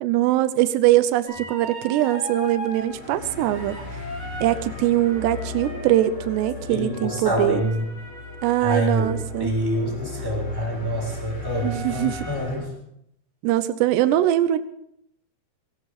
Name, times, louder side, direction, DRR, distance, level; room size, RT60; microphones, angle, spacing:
voice 1, 0.0-4.0 4.4-7.6 8.4-9.5 11.6-12.3 13.4-14.6, right 13 dB, 90° right, 12 dB, 2.9 m, -22 dB
sound 1, 1.3-2.9 3.4-9.3 11.4-12.4, right 1 dB, 20° left, 7.6 m, -38 dB
sound 2, 2.7-12.5, left 3 dB, 45° left, 8.1 m, -37 dB
voice 2, 6.7-7.9 8.6-12.7, equal, 5° right, -2 dB, 6.3 m, -26 dB
18.0 x 18.0 x 4.1 m, 0.74 s
omnidirectional pair, 4.8 m